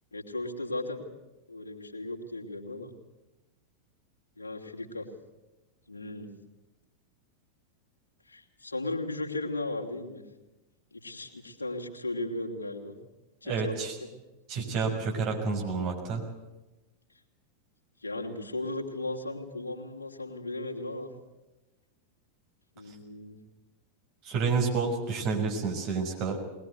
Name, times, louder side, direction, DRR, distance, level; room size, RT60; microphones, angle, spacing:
voice 1, 0.1-1.1 1.5-2.9 4.4-5.1 5.9-6.3 8.3-10.2 10.9-13.0 13.4-14.1 18.0-21.1 22.8-23.4, left 2 dB, 75° left, 1 dB, 2.9 m, -36 dB
voice 2, 13.4-13.9 14.5-16.2 24.2-26.4, right 4 dB, 40° right, 1 dB, 5.8 m, -29 dB
21.5 x 20.0 x 8.2 m, 1.1 s
figure-of-eight pair, 90°, 0 cm